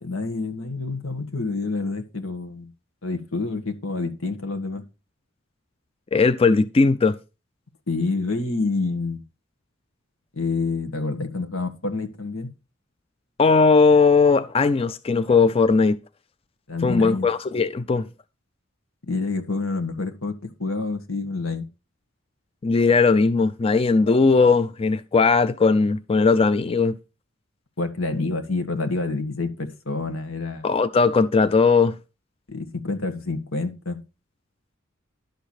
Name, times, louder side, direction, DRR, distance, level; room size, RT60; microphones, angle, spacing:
voice 1, 0.0-2.7 3.0-4.8 7.9-9.2 10.3-12.5 16.7-17.3 19.1-21.7 27.8-30.7 32.5-34.0, left 3 dB, 90° left, 1.6 m, -28 dB
voice 2, 6.1-7.1 13.4-16.0 16.8-18.1 22.6-27.0 30.6-32.0, left 4 dB, 30° left, 0.4 m, -18 dB
11.5 x 6.7 x 4.4 m
head